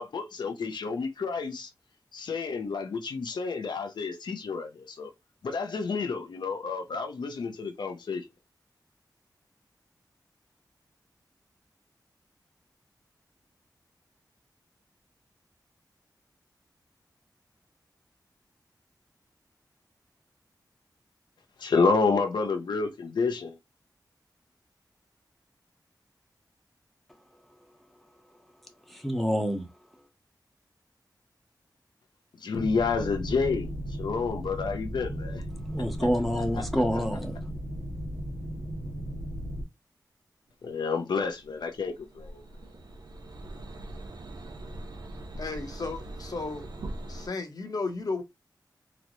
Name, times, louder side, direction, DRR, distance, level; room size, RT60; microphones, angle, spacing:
voice 1, 0.0-1.7 2.1-5.1 5.4-8.3 21.6-23.6 32.3-35.4 36.0-36.1 36.4-36.7 36.9-37.0 40.6-42.4, left 4 dB, 85° left, 0.6 m, -29 dB
voice 2, 28.9-29.6 35.7-37.4, equal, ahead, 0.8 m, -27 dB
sound 1, 32.6-39.6, equal, 40° right, 1.9 m, -36 dB
sound 2, 41.2-47.3, right 1 dB, 70° right, 0.6 m, -42 dB
voice 3, 45.4-46.6 47.1-48.2, left 3 dB, 60° left, 0.8 m, -34 dB
3.9 x 2.1 x 3.0 m
wide cardioid pair, 80°, 7 cm